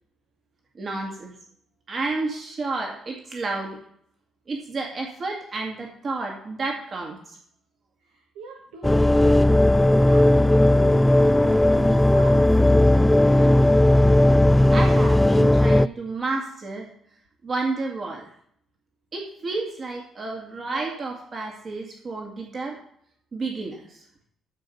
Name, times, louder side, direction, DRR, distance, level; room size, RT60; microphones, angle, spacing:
voice 1, 0.8-1.3 1.9-3.8 4.5-7.4 14.7-16.9 17.4-18.3 19.1-22.8 23.3-24.0, right 3 dB, 40° right, 0 dB, 2.2 m, -31 dB
voice 2, 8.1-9.5 9.9-12.5 12.9-13.6, right 5 dB, 70° right, 1 dB, 1.6 m, -41 dB
sound 1, 8.8-15.9, left 1 dB, 10° left, 0.3 m, -17 dB
14.0 x 5.2 x 5.7 m, 0.66 s
figure-of-eight pair, 45°, 0 cm